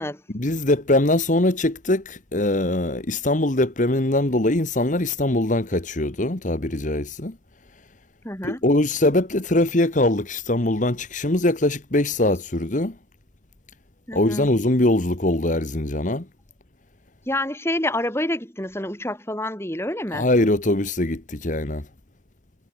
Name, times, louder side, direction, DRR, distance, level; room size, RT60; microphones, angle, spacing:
voice 1, 0.3-7.4 7.7-7.8 8.4-13.0 14.1-16.3 20.1-21.9, left 1 dB, 45° left, 1.4 m, -22 dB
voice 2, 8.2-8.6 14.1-14.5 17.3-20.3, left 1 dB, 15° left, 5.5 m, -27 dB
head